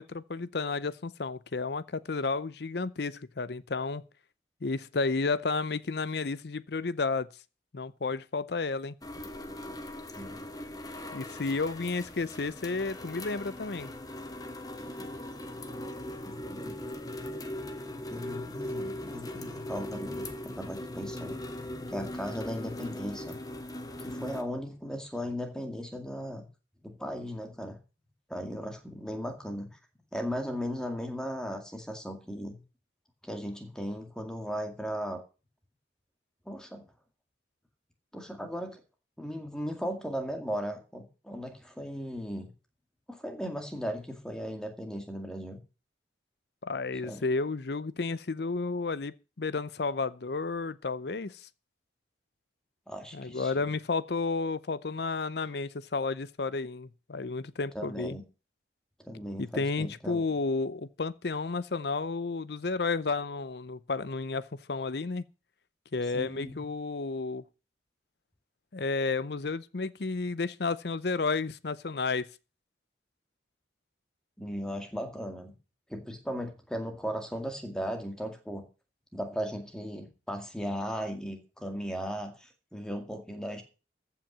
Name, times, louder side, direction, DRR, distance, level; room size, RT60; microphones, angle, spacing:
voice 1, 0.0-4.1 4.6-7.3 7.7-9.0 11.1-13.9 46.6-51.5 53.1-58.2 59.4-65.3 65.9-67.4 68.7-72.3, left 4 dB, 60° left, 0.6 m, -32 dB
sound 1, 9.0-24.4, left 1 dB, 20° left, 1.1 m, -39 dB
voice 2, 10.2-10.5 14.8-15.1 16.3-16.8 18.1-21.4 21.9-23.4 24.0-26.5 26.8-27.8 28.3-29.7 30.1-32.6 33.2-35.2 36.5-36.8 38.1-38.8 39.2-42.5 43.1-45.6 47.0-47.3 52.9-53.7 57.7-58.2 59.0-60.2 66.1-66.6 74.4-75.5 75.9-78.6 79.1-83.6, equal, 5° left, 2.1 m, -37 dB
14.5 x 5.9 x 7.3 m
head